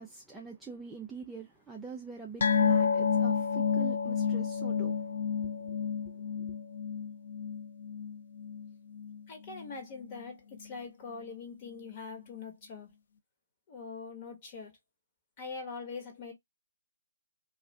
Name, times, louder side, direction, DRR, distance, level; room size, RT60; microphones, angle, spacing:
voice 1, 0.0-5.1 5.4-5.8 6.0-6.5, right 5 dB, 5° right, 0.4 m, -45 dB
sound 1, 2.4-9.2 9.5-9.7 10.1-10.2, left 6 dB, 50° left, 0.5 m, -30 dB
voice 2, 9.3-12.9 13.7-14.8 15.4-16.3, left 4 dB, 30° left, 1.2 m, -43 dB
2.4 x 2.4 x 3.2 m
figure-of-eight pair, 145°, 0 cm